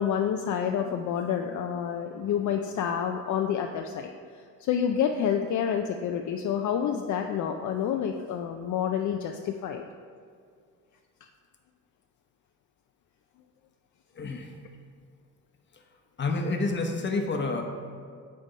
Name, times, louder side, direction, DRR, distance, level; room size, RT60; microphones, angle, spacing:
voice 1, 0.0-9.9, left 8 dB, 60° left, 4 dB, 0.4 m, -28 dB
voice 2, 14.2-14.5 16.2-17.6, left 3 dB, 35° left, 3 dB, 0.9 m, -28 dB
8.9 x 3.4 x 5.4 m, 2.1 s
cardioid pair, 125°, 33 cm